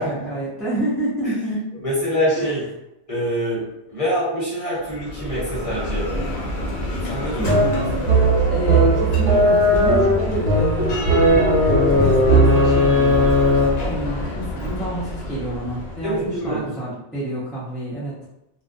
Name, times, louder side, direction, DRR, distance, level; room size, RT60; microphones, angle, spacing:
voice 1, 0.0-1.6 2.4-2.5 7.4-8.0 8.5-11.5 11.9-13.2 13.8-18.2, right 1 dB, ahead, -9 dB, 0.5 m, -28 dB
voice 2, 1.8-2.6 3.1-6.3 7.1-7.5 8.0-8.1 16.0-16.6, equal, 30° left, -7 dB, 1.0 m, -25 dB
Bell, 4.8-16.6, left 1 dB, 65° left, 0.9 m, -28 dB
sound 1, 7.5-13.9, equal, 90° right, 0.9 m, -17 dB
2.3 x 2.2 x 2.5 m, 0.87 s
omnidirectional pair, 1.2 m